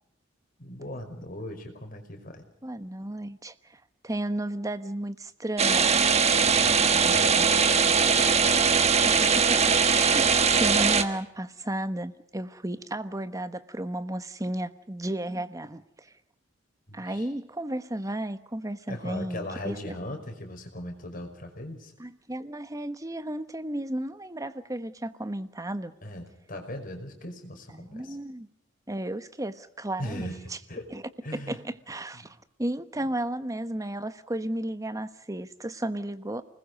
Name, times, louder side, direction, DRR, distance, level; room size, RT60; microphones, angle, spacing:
voice 1, 0.6-2.4 6.4-8.6 15.2-15.4 16.9-17.3 18.9-21.9 26.0-28.2 30.0-30.9 31.2-31.6 32.1-32.3, left 1 dB, 50° left, 4 dB, 5.4 m, -39 dB
voice 2, 2.6-6.1 9.0-16.1 16.9-20.0 22.0-25.9 27.7-28.5 28.9-30.3 30.9-31.0 31.3-36.4, right 1 dB, 20° right, 11 dB, 1.2 m, -33 dB
sound 1, 5.6-11.0, right 5 dB, 35° right, 1.5 m, -21 dB
29.0 x 20.5 x 5.4 m, 0.74 s
head